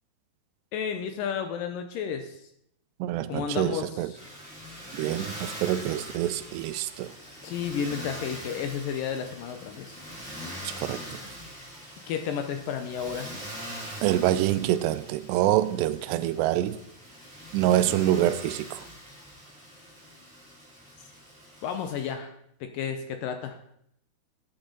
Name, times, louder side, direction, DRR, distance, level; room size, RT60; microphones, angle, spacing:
voice 1, 0.7-2.4 3.3-4.2 7.4-10.0 12.1-13.3 21.6-22.3 22.6-23.6, left 7 dB, 80° left, 2.0 m, -32 dB
voice 2, 3.0-4.1 4.9-7.1 10.8-11.2 14.0-16.8 17.5-18.8, right 13 dB, 90° right, 2.7 m, -26 dB
Motor vehicle (road), 4.2-22.1, equal, ahead, 3.9 m, -42 dB
13.5 x 9.0 x 3.9 m
omnidirectional pair, 4.8 m